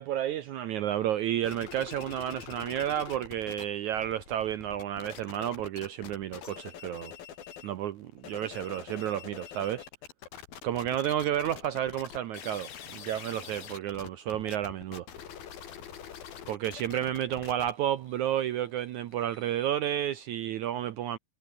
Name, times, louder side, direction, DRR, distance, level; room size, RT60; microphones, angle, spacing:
voice 1, 0.0-7.1 7.6-9.8 10.6-15.1 16.5-21.2, right 11 dB, 90° right, 1.6 m, -31 dB
sound 1, 1.4-3.6 3.9-7.7 8.1-19.7, left 9 dB, 65° left, 4.3 m, -45 dB
omnidirectional pair, 4.8 m